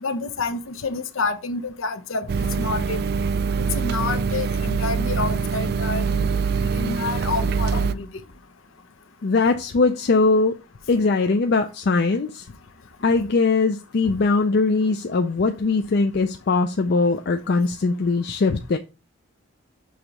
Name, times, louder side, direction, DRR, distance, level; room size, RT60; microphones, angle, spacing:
voice 1, 0.0-3.0 3.6-6.3 6.6-8.1 14.1-14.2, left 3 dB, 80° left, 0.7 m, -28 dB
sound 1, 2.3-7.9, right 5 dB, 50° right, 0.3 m, -24 dB
voice 2, 9.2-10.5 10.9-12.5 13.0-18.8, left 3 dB, 55° left, 0.4 m, -21 dB
6.4 x 2.9 x 5.1 m
head